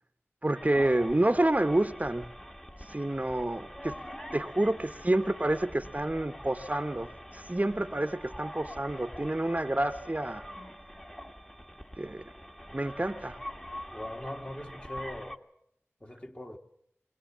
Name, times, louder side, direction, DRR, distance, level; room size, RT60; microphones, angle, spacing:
voice 1, 0.4-2.3 2.9-4.0 4.3-10.4 12.0-12.2 12.7-13.4, right 1 dB, 30° right, 1.0 m, -28 dB
sound 1, 0.5-15.4, equal, 10° left, 1.5 m, -45 dB
voice 2, 13.9-15.4 16.0-16.6, left 1 dB, 25° left, 2.0 m, -41 dB
21.5 x 19.5 x 7.3 m
wide cardioid pair, 45°, 5 cm